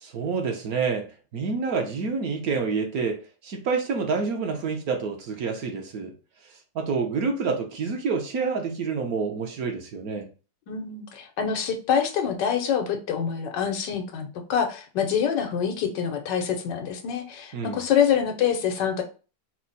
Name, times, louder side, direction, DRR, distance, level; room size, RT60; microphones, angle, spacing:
voice 1, 0.0-6.1 6.7-10.3 17.5-17.8, right 5 dB, 65° right, 1.2 m, -28 dB
voice 2, 10.7-19.0, left 8 dB, 85° left, 1.5 m, -26 dB
4.5 x 2.1 x 3.9 m
omnidirectional pair, 1.8 m